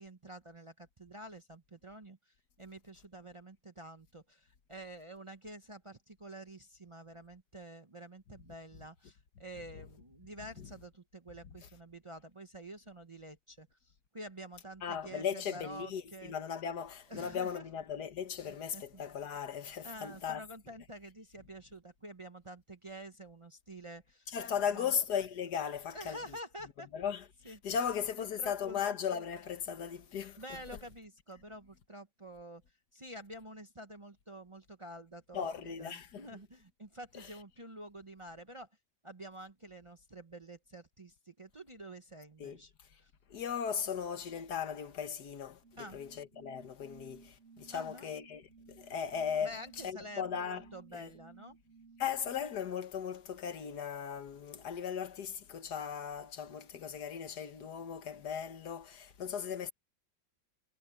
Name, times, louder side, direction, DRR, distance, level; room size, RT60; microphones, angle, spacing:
voice 1, 0.0-16.3 17.1-17.7 18.4-19.0 19.8-24.9 25.9-26.9 27.4-28.8 30.4-32.6 32.9-38.7 39.0-43.1 45.8-46.0 47.7-48.1 49.4-51.6, right 1 dB, 30° right, 0.6 m, -49 dB
voice 2, 14.8-20.4 24.3-26.2 26.9-30.4 35.3-36.3 37.2-37.3 42.4-42.6 43.3-49.5 49.8-50.6 50.9-51.1 52.0-59.7, left 8 dB, 65° left, 1.8 m, -37 dB
sound 1, 45.6-52.4, right 5 dB, 50° right, 1.6 m, -59 dB
omnidirectional pair, 1.9 m